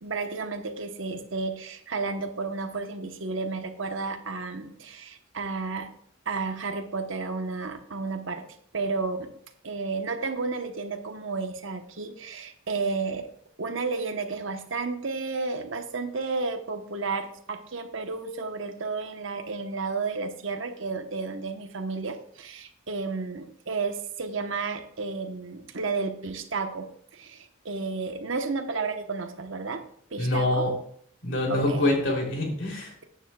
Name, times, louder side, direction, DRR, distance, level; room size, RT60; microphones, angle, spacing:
voice 1, 0.0-5.9 6.3-8.4 8.7-9.3 9.6-13.3 13.6-29.8 30.1-30.7 31.5-31.9, right 4 dB, 70° right, 6 dB, 1.1 m, -32 dB
voice 2, 30.2-30.7 31.2-32.9, left 1 dB, 60° left, -1 dB, 3.2 m, -25 dB
14.0 x 9.1 x 2.3 m, 0.64 s
head